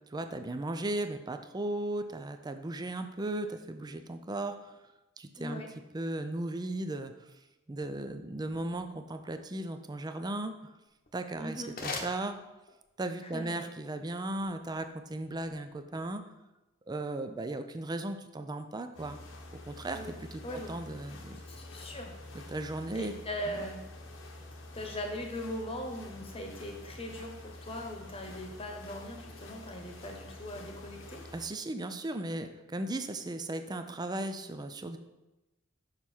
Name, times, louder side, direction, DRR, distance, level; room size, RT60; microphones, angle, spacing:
voice 1, 0.1-4.6 5.2-5.6 5.9-7.1 7.7-10.5 11.1-12.4 13.0-16.2 16.9-19.2 19.7-21.4 22.5-23.1 23.5-23.6 31.3-35.0, right 2 dB, 20° right, 8 dB, 0.4 m, -36 dB
voice 2, 5.4-5.7 11.4-11.7 13.2-13.6 19.9-20.1 20.4-20.7 21.3-22.1 22.9-23.8 24.7-27.3 27.6-31.2, equal, 30° left, 3 dB, 1.1 m, -40 dB
sound 1, 10.9-13.0, left 4 dB, 45° left, 1.0 m, -42 dB
sound 2, 18.9-31.5, left 2 dB, 70° left, 1.1 m, -48 dB
6.6 x 5.5 x 4.5 m, 1.0 s
head